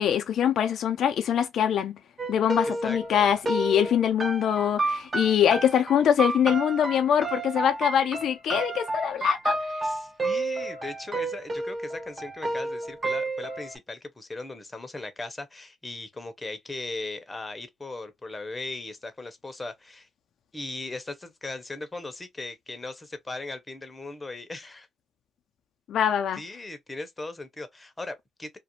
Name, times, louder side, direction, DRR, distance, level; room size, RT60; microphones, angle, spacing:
voice 1, 0.0-2.0 2.3-9.6 25.9-26.4, left 9 dB, 70° left, 0.3 m, -23 dB
sound 1, 2.2-13.7, right 2 dB, 25° right, 0.6 m, -31 dB
voice 2, 2.8-3.3 9.8-20.1 20.5-24.9 26.3-28.6, left 2 dB, 20° left, 0.6 m, -38 dB
2.4 x 2.1 x 2.8 m
cardioid pair, 90°, 0 cm